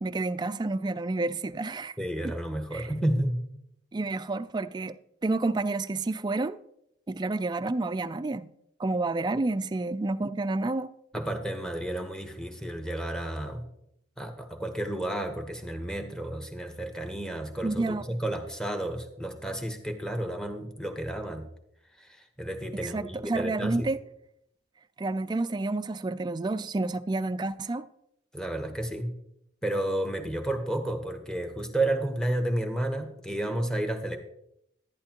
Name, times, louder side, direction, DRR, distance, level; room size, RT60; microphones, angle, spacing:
voice 1, 0.0-1.9 2.2-2.3 2.7-2.9 3.9-5.0 5.2-6.6 7.1-8.5 8.8-10.9 17.6-18.0 22.7-24.0 25.0-27.8, right 2 dB, 20° right, 0.3 m, -29 dB
voice 2, 2.0-3.4 11.1-13.6 14.2-21.4 22.0-23.9 28.3-29.1 29.6-34.2, right 1 dB, 5° left, 1.0 m, -31 dB
11.5 x 11.0 x 2.9 m
head